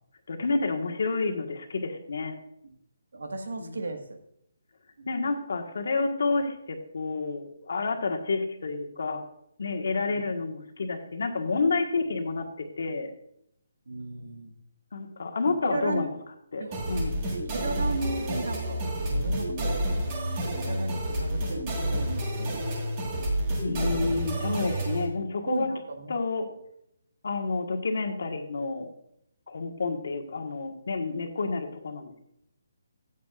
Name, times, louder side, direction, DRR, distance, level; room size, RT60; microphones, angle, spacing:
voice 1, 0.3-2.4 5.1-9.2 9.6-13.1 14.9-16.1 16.5-17.1 23.6-25.7 26.1-26.4 27.2-28.9 29.5-32.2, left 3 dB, 55° left, 4 dB, 1.5 m, -29 dB
voice 2, 3.1-4.2 5.0-5.1 10.1-10.2 13.9-14.5 15.6-16.1 16.6-16.8 17.3-19.9 20.4-22.8 25.4-26.2, right 3 dB, 75° right, 5 dB, 1.7 m, -35 dB
sound 1, 16.7-25.1, right 1 dB, 20° right, 1.8 m, -29 dB
14.5 x 8.3 x 2.5 m, 0.75 s
hypercardioid pair, 175°, 0 cm